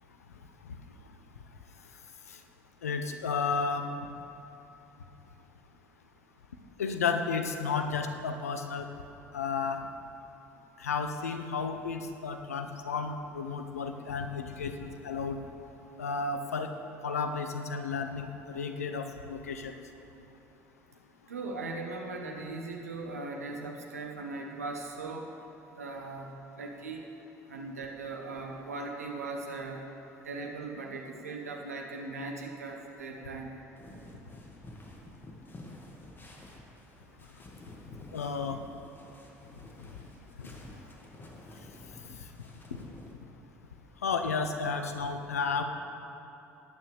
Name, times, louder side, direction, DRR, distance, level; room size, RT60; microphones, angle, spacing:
voice 1, 2.8-3.9 6.8-8.9 9.3-9.8 10.8-15.4 16.0-16.7 17.0-19.7 38.1-38.6 40.4-40.5 42.1-42.2 44.0-45.6, left 5 dB, 80° left, 7 dB, 0.7 m, -32 dB
voice 2, 21.3-25.3 25.7-27.0 27.5-29.8 30.2-33.5, right 3 dB, 85° right, 2 dB, 1.1 m, -39 dB
sound 1, 33.8-43.1, left 1 dB, 25° left, 2.1 m, -50 dB
18.5 x 9.0 x 3.5 m, 2.9 s
figure-of-eight pair, 60°, 8 cm